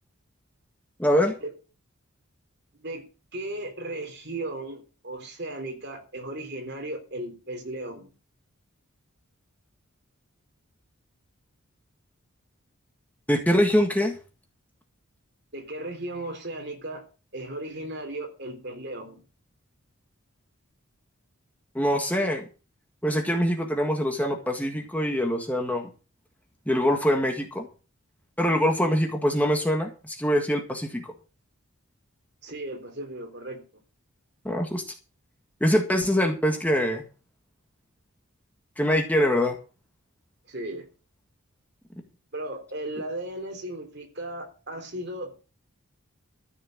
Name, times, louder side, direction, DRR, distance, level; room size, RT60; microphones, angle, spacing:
voice 1, 1.0-1.3 13.3-14.2 21.7-22.4 23.0-25.9 26.7-27.7 28.4-31.0 34.4-34.8 35.6-37.0 38.8-39.6, equal, 5° left, 3 dB, 1.6 m, -24 dB
voice 2, 2.8-8.1 15.5-17.1 17.3-19.2 32.4-33.6 40.5-40.9 42.3-45.4, right 1 dB, 50° right, 5 dB, 3.5 m, -36 dB
14.0 x 6.6 x 7.8 m, 0.35 s
head